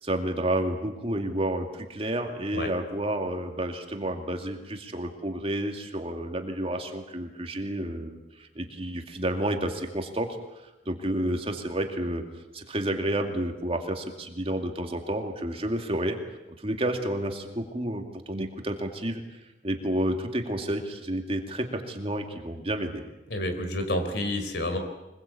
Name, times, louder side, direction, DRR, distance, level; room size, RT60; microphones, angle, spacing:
voice 1, 0.0-10.3 10.9-12.2 12.5-16.2 16.6-19.2 19.6-23.0, right 1 dB, 30° right, 4 dB, 2.4 m, -30 dB
voice 2, 23.3-24.8, left 1 dB, 60° left, 7 dB, 4.0 m, -29 dB
25.0 x 21.0 x 8.6 m, 1.0 s
head